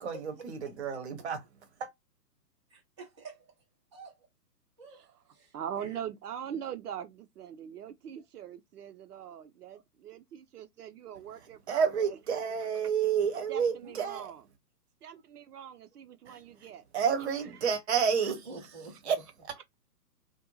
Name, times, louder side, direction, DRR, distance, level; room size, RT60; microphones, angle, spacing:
voice 1, 0.0-1.4 1.8-1.9 11.7-14.3 16.3-16.7 16.9-18.4 19.1-19.2 19.5-19.6, right 7 dB, 45° right, 0.8 m, -30 dB
voice 2, 2.7-3.4 3.9-4.2 4.8-6.0 9.7-9.8 13.8-14.2 18.3-19.1, right 3 dB, 20° right, 0.4 m, -48 dB
voice 3, 4.9-5.2 5.5-12.2 13.5-14.4 15.0-16.8 18.2-18.3, right 9 dB, 70° right, 0.5 m, -42 dB
2.4 x 2.2 x 2.9 m
hypercardioid pair, 135°, 48 cm